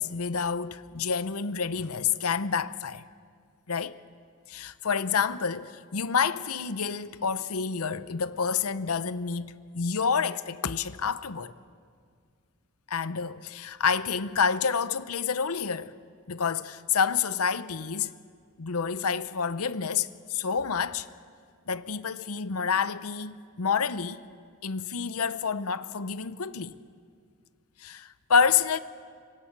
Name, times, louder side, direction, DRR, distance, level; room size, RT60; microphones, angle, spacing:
voice 1, 0.0-3.0 3.7-4.0 4.5-11.5 12.9-16.0 16.3-18.1 18.6-21.1 21.7-24.2 24.6-26.8 27.8-28.8, left 6 dB, 85° left, 0.8 m, -28 dB
26.5 x 24.0 x 6.1 m
head